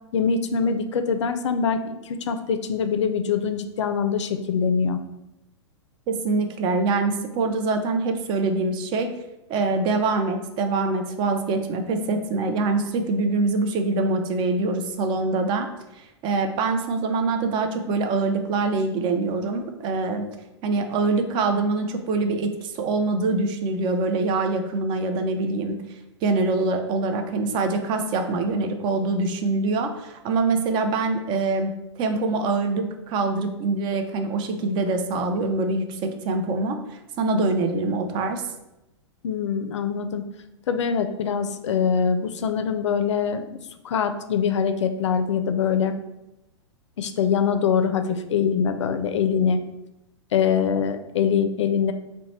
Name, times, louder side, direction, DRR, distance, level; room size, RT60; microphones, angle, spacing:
voice 1, 0.1-5.0 39.2-40.3 40.7-43.4 43.8-45.9 47.0-49.6 50.3-51.9, left 6 dB, 70° left, 8 dB, 0.4 m, -23 dB
voice 2, 6.1-9.1 9.5-15.7 16.0-20.2 20.6-25.8 26.2-31.7 32.0-38.4, right 3 dB, 30° right, 6 dB, 0.4 m, -24 dB
2.9 x 2.1 x 4.1 m, 0.92 s
figure-of-eight pair, 105°, 16 cm